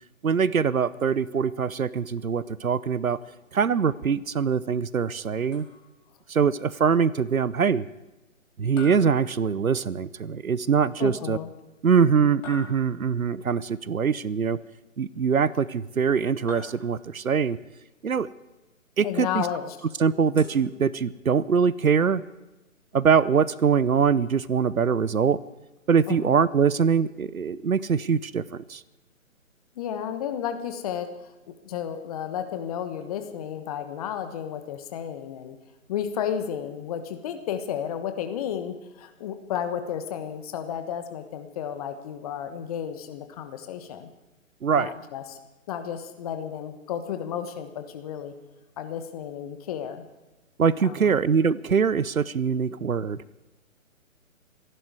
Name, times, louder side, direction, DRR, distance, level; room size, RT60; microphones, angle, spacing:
voice 1, 0.2-3.2 3.5-5.7 6.3-7.9 8.6-11.4 11.8-14.6 15.0-17.6 18.0-18.3 19.0-19.5 20.0-22.2 22.9-25.4 25.9-28.8 44.6-44.9 50.6-53.2, right 6 dB, 80° right, 20 dB, 0.8 m, -23 dB
sound 1, 5.5-6.1 8.8-10.0 12.4-13.3 16.5-17.3 20.4-21.4, left 4 dB, 65° left, 4.8 m, -45 dB
voice 2, 11.0-11.5 19.0-19.8 20.4-20.5 26.1-26.4 29.7-31.3 31.6-35.6 35.9-44.1 44.7-45.4 45.7-48.3 48.8-50.0 50.8-51.2, left 9 dB, 25° left, 8 dB, 1.2 m, -32 dB
26.0 x 11.0 x 4.8 m, 1.1 s
figure-of-eight pair, 135°, 41 cm